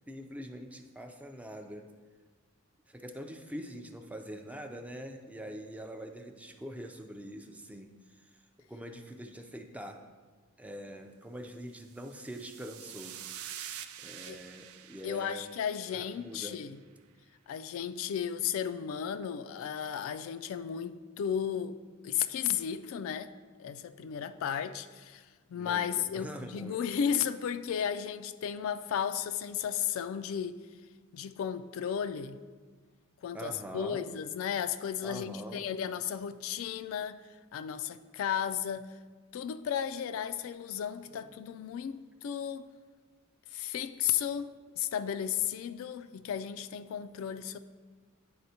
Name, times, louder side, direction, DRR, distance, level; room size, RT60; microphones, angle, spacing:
voice 1, 0.1-1.9 2.9-8.3 8.6-10.0 10.6-13.3 13.6-15.6 15.9-16.6 25.6-26.8 33.3-34.1 35.0-35.6 41.1-41.3, equal, 5° right, 0.4 m, -44 dB
sound 1, 11.8-16.3, right 10 dB, 85° right, 0.4 m, -46 dB
voice 2, 15.0-16.8 17.5-21.8 22.0-23.3 23.6-30.6 31.1-32.4 33.2-37.2 37.5-39.0 39.3-42.7 43.5-47.6, left 8 dB, 70° left, 0.3 m, -34 dB
10.0 x 4.3 x 2.8 m
head